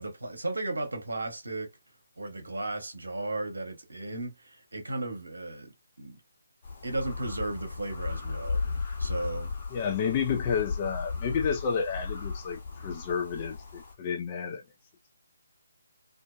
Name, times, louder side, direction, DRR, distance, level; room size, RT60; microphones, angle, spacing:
voice 1, 0.0-1.7 2.2-6.2 6.8-9.5, right 2 dB, 70° right, 1.0 m, -35 dB
sound 1, 6.6-13.9, left 4 dB, 45° left, 1.1 m, -35 dB
voice 2, 9.7-14.6, left 6 dB, 25° left, 0.4 m, -30 dB
2.5 x 2.2 x 2.3 m
figure-of-eight pair, 145°, 0 cm